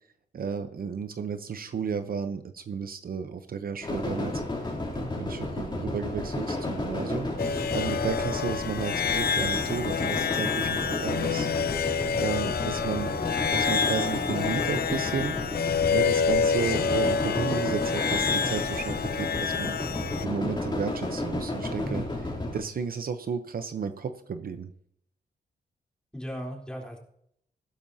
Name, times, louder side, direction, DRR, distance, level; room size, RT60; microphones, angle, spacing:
voice 1, 0.3-11.5 12.2-13.1 13.5-19.8 20.2-22.0 22.5-24.7, right 6 dB, 60° right, 9 dB, 0.7 m, -33 dB
sound 1, 3.8-22.6, left 2 dB, 25° left, 3.0 m, -32 dB
sound 2, 7.4-20.3, left 6 dB, 65° left, 0.7 m, -28 dB
voice 2, 21.8-22.7 26.1-27.0, equal, 5° left, 0 dB, 3.6 m, -38 dB
15.0 x 13.0 x 2.8 m, 0.70 s
wide cardioid pair, 100°, 17 cm